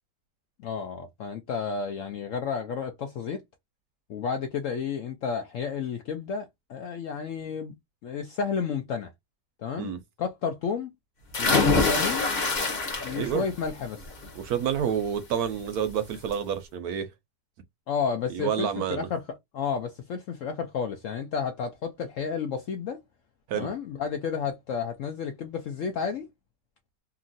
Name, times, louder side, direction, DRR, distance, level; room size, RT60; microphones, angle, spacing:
voice 1, 0.6-3.4 4.1-7.7 8.0-9.1 9.6-9.9 10.2-10.9 11.4-12.3 13.0-14.1 17.9-19.2 19.5-23.0 23.5-26.3, left 6 dB, 70° left, 0.7 m, -31 dB
sound 1, 11.3-13.4 13.8-14.3 15.6-15.7 16.1-16.2, left 3 dB, 40° left, 1.1 m, -24 dB
voice 2, 13.1-13.4 14.3-17.1 18.3-19.1 23.5-23.7, right 8 dB, 70° right, 1.0 m, -29 dB
2.9 x 2.6 x 2.5 m
omnidirectional pair, 1.9 m